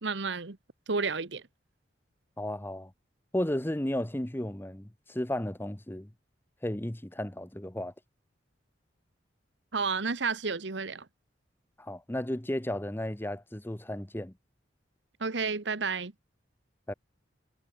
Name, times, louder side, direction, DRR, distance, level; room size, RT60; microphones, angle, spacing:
voice 1, 0.0-0.6 0.9-1.4 9.7-11.1 15.2-16.1, right 4 dB, 70° right, 1.2 m, -31 dB
voice 2, 2.4-2.9 3.3-6.1 6.6-7.9 11.8-14.3 16.9-17.0, left 1 dB, 10° left, 1.0 m, -34 dB
head